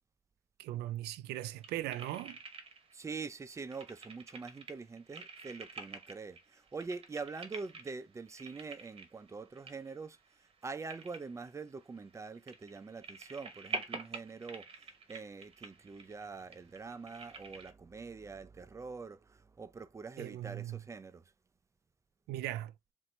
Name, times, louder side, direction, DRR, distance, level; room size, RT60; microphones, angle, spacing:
voice 1, 0.6-2.4 20.2-20.8 22.3-22.7, right 14 dB, 80° right, 0.5 m, -39 dB
sound 1, 1.3-3.0 3.3-17.7, right 4 dB, 35° right, 0.9 m, -48 dB
voice 2, 2.9-10.2 10.6-21.2, right 4 dB, 15° right, 0.4 m, -44 dB
4.2 x 2.6 x 3.1 m
cardioid pair, 110°, 17 cm